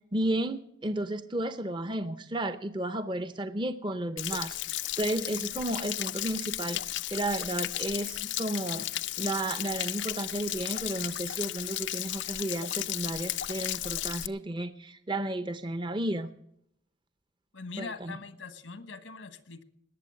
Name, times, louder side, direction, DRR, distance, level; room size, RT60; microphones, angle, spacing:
voice 1, 0.1-8.9 9.2-16.3 17.8-18.2, right 1 dB, 25° right, 11 dB, 0.6 m, -33 dB
Stream / Splash splatter / Trickle dribble, 4.2-14.3, left 14 dB, 70° left, 0.5 m, -34 dB
voice 2, 17.5-19.6, left 4 dB, 90° left, 11 dB, 1.4 m, -42 dB
19.5 x 7.6 x 7.6 m, 0.75 s
head